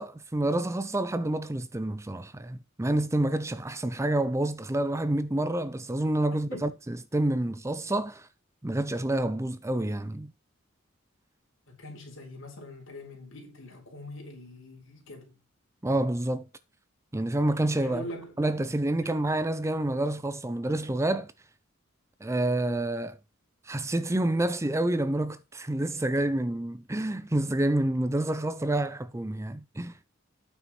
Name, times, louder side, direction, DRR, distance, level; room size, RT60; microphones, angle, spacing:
voice 1, 0.0-8.3 8.6-10.3 15.8-16.5 17.1-18.0 18.4-21.3 22.2-23.2 23.7-29.9, right 1 dB, 15° right, 0.5 m, -28 dB
voice 2, 11.7-15.4 17.8-18.3, left 1 dB, 65° left, 4.1 m, -43 dB
9.1 x 7.0 x 4.3 m
head